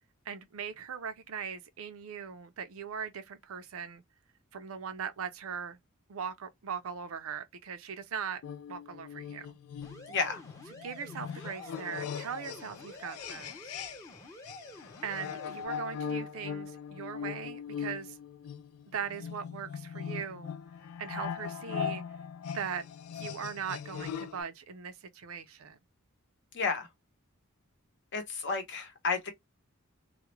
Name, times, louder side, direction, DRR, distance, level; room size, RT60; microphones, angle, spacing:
voice 1, 0.3-4.0 4.5-5.8 6.1-8.4 8.7-9.6 10.8-13.7 15.0-18.2 18.9-20.6 21.0-22.0 22.5-22.9 23.1-25.8, right 7 dB, 70° right, 0.5 m, -40 dB
sound 1, 8.4-14.2 14.5-24.4, left 7 dB, 75° left, 0.3 m, -40 dB
sound 2, 9.8-15.6, left 1 dB, 15° left, 0.6 m, -49 dB
voice 2, 10.1-10.4 26.5-26.9 28.1-29.3, left 4 dB, 55° left, 0.8 m, -31 dB
2.3 x 2.1 x 2.9 m
head